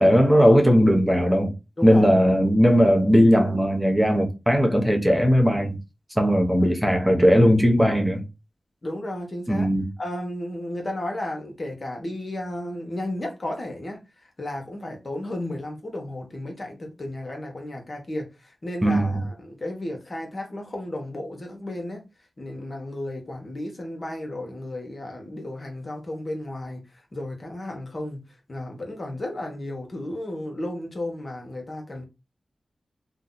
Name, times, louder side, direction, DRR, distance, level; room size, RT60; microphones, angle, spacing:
voice 1, 0.0-1.5 1.8-5.8 6.1-8.2 9.5-9.9 18.8-19.2, equal, 5° right, 0.8 m, -18 dB
voice 2, 1.8-2.1 6.6-6.7 8.8-9.7 10.0-22.0 22.4-26.8 27.1-28.2 28.5-32.0, left 1 dB, 50° left, 1.1 m, -33 dB
2.7 x 2.3 x 3.9 m
cardioid pair, 45°, 0 cm